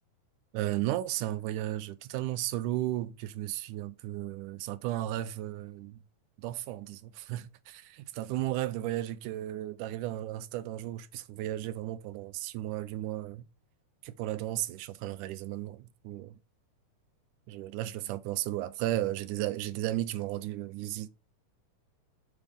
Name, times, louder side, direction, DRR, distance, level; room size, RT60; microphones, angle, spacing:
voice 1, 0.5-6.0 6.4-13.5 14.0-16.4 17.5-21.1, right 14 dB, 80° right, 2.1 m, -34 dB
7.2 x 3.3 x 5.2 m
omnidirectional pair, 3.6 m